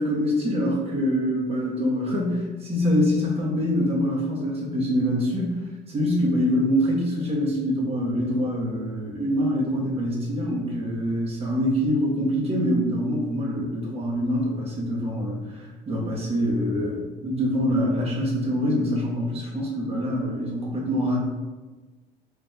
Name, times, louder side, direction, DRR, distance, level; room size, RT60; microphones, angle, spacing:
voice 1, 0.0-5.6 5.9-21.2, equal, 35° right, -4 dB, 1.2 m, -25 dB
5.0 x 3.3 x 2.4 m, 1.2 s
cardioid pair, 110°, 17 cm